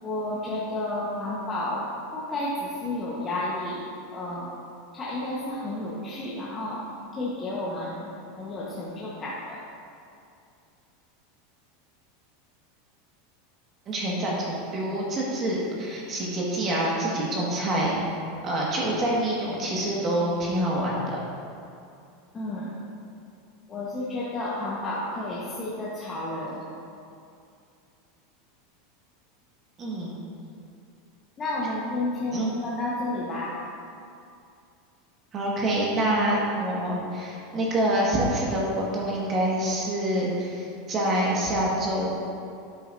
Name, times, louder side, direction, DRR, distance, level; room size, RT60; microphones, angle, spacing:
voice 1, 0.0-1.8 2.1-3.8 4.1-4.5 4.9-6.8 7.1-9.6 22.3-22.7 23.7-26.6 31.4-33.6, left 2 dB, 25° left, -7 dB, 1.3 m, -31 dB
voice 2, 13.9-18.0 18.4-21.2 29.8-30.1 32.3-32.5 35.3-42.3, right 1 dB, 30° right, -4 dB, 1.8 m, -26 dB
9.9 x 8.4 x 2.7 m, 2.5 s
supercardioid pair, 135°, 0 cm